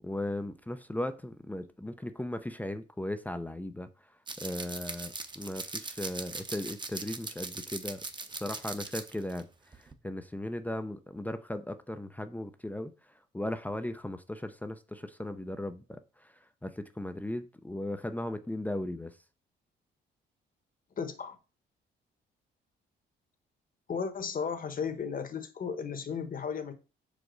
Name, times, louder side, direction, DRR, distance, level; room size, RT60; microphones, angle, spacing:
voice 1, 0.0-8.0 8.3-19.2, left 1 dB, 10° left, 0.6 m, -37 dB
sound 1, 4.3-9.4 9.7-9.9, right 3 dB, 25° right, 0.9 m, -40 dB
voice 2, 21.0-21.4 23.9-26.7, left 6 dB, 45° left, 1.3 m, -35 dB
5.8 x 5.0 x 4.0 m
cardioid pair, 90°, 20 cm